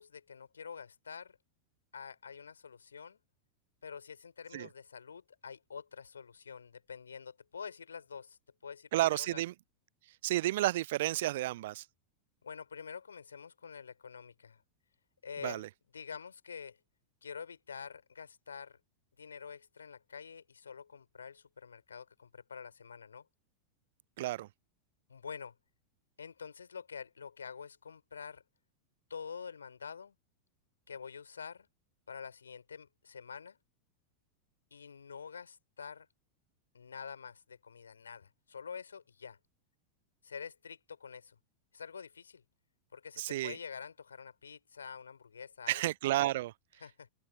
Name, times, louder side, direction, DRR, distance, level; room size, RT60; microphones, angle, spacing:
voice 1, 0.0-1.4 1.9-3.2 3.8-9.4 12.4-14.6 15.2-15.6 15.9-16.8 17.2-18.8 19.2-23.3 25.1-25.5 26.2-28.4 29.1-30.2 30.9-31.7 32.1-33.6 34.7-36.1 36.7-39.4 40.2-41.4 41.7-42.4 42.9-45.8 46.8-47.1, left 6 dB, 70° left, 5.2 m, -47 dB
voice 2, 8.9-9.5 10.2-11.9 15.4-15.7 24.2-24.5 43.2-43.6 45.7-46.5, right 16 dB, 55° right, 0.3 m, -31 dB
open air
figure-of-eight pair, 90°, 0 cm